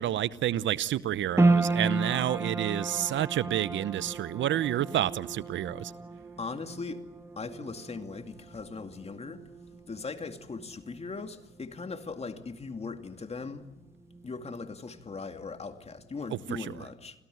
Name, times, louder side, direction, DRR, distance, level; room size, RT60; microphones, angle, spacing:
voice 1, 0.0-5.9 16.3-16.7, right 12 dB, 70° right, 0.9 m, -29 dB
sound 1, 1.4-13.8 14.0-15.0 15.4-15.5, right 3 dB, 15° right, 1.3 m, -33 dB
voice 2, 6.4-7.0 7.4-9.4 9.9-13.6 14.2-17.1, left 4 dB, 30° left, 2.5 m, -39 dB
27.0 x 17.0 x 9.4 m
cardioid pair, 90°, 20 cm